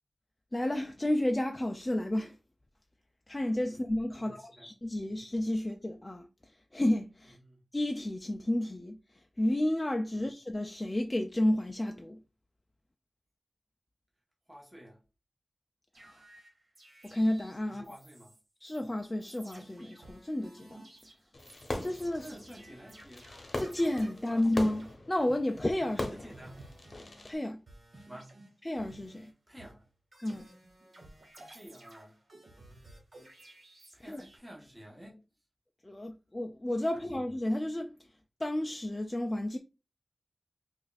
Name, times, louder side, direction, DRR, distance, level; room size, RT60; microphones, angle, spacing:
voice 1, 0.5-2.4 3.3-7.4 7.7-12.2 16.0-16.2 17.0-18.0 18.6-20.8 21.8-22.3 23.6-26.1 27.2-27.6 28.6-29.3 30.2-30.5 34.1-34.2 35.8-37.9 38.4-39.6, left 1 dB, 20° left, 0.3 m, -31 dB
voice 2, 4.1-4.7 5.0-5.2 7.4-7.6 10.1-10.3 14.5-15.0 17.6-18.4 22.1-23.3 24.3-24.7 25.9-26.7 28.0-28.3 29.5-29.9 31.4-32.2 33.9-35.2 36.9-37.1, equal, 10° right, 0.9 m, -51 dB
sound 1, 15.9-18.4 18.7-18.8 19.2-27.4 27.7-29.3 29.6-34.4, right 1 dB, 60° right, 1.4 m, -55 dB
Fireworks, 21.3-27.4, left 2 dB, 50° left, 0.8 m, -40 dB
4.9 x 2.5 x 2.3 m
wide cardioid pair, 100°, 0 cm